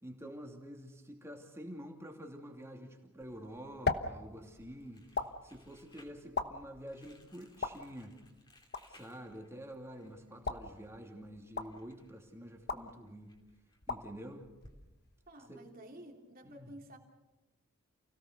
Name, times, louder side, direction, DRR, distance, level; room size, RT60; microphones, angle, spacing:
voice 1, 0.0-8.2 8.9-13.3 13.9-14.5 15.5-15.6 16.4-16.8, equal, 10° right, 2 dB, 2.8 m, -48 dB
sound 1, 3.2-15.4, left 4 dB, 45° left, 1.1 m, -42 dB
Crumpling crinkling, 4.8-14.8, left 1 dB, 20° left, 2.9 m, -65 dB
voice 2, 15.3-17.0, right 1 dB, 40° right, 2 dB, 3.3 m, -52 dB
29.5 x 17.5 x 6.8 m, 1.1 s
head